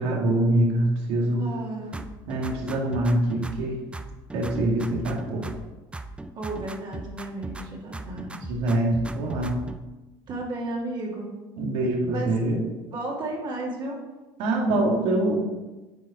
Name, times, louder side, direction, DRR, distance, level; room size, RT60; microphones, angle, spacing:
voice 1, 0.0-1.5 2.3-3.8 4.3-5.4 8.5-9.5 11.6-12.6 14.4-15.4, right 1 dB, 75° right, 0 dB, 2.0 m, -24 dB
voice 2, 1.2-2.0 6.3-8.5 10.3-11.3 12.1-12.4 12.9-14.0, right 2 dB, 45° right, -2 dB, 2.3 m, -33 dB
sound 1, 1.9-3.7 3.9-5.7 5.9-7.7 7.9-9.8, right 2 dB, 10° right, 0.5 m, -37 dB
7.9 x 5.1 x 4.9 m, 1.1 s
supercardioid pair, 110°, 11 cm